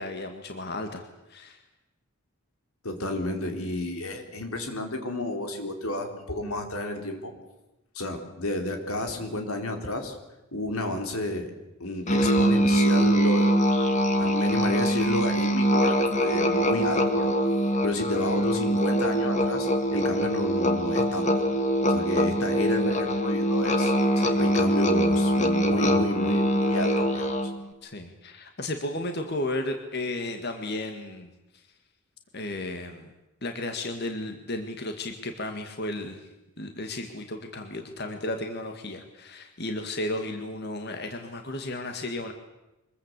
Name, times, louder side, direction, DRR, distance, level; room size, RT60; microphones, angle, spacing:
voice 1, 0.0-1.6 24.2-24.4 27.8-31.3 32.3-33.1 33.4-36.2 36.6-42.3, left 1 dB, 50° left, 5 dB, 2.0 m, -34 dB
voice 2, 2.8-7.3 7.9-10.1 10.5-11.5 11.8-13.5 14.2-17.3 17.8-21.5 21.9-23.9 24.4-27.4, left 1 dB, 85° left, 5 dB, 4.1 m, -31 dB
Musical instrument, 12.1-27.6, equal, 35° left, 2.3 m, -23 dB
25.0 x 21.5 x 8.3 m, 0.97 s
head